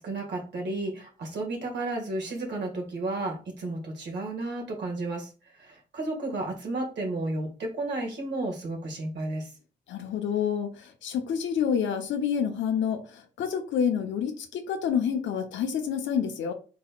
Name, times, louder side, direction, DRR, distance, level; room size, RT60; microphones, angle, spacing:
voice 1, 0.0-9.5, right 2 dB, 60° right, 1 dB, 1.9 m, -32 dB
voice 2, 9.9-16.5, left 7 dB, 65° left, 6 dB, 0.8 m, -28 dB
4.6 x 4.0 x 2.4 m, 0.36 s
hypercardioid pair, 50°, 21 cm